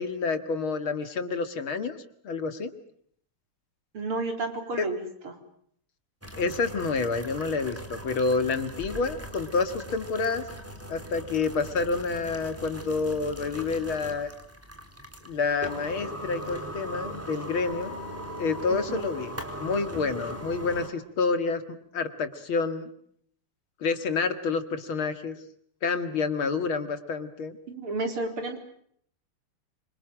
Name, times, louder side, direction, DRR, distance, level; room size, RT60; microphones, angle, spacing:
voice 1, 0.0-1.9 2.2-2.7 4.8-4.9 6.4-10.4 10.9-14.3 15.2-18.0 18.3-22.9 23.8-25.4 25.8-27.6, left 4 dB, 70° left, 10 dB, 2.9 m, -28 dB
voice 2, 3.9-5.0 18.9-19.0 27.7-28.6, right 2 dB, 80° right, 5 dB, 5.0 m, -31 dB
sound 1, 6.2-20.9, equal, 5° right, 4.2 m, -40 dB
26.5 x 26.5 x 7.5 m, 0.65 s
omnidirectional pair, 2.4 m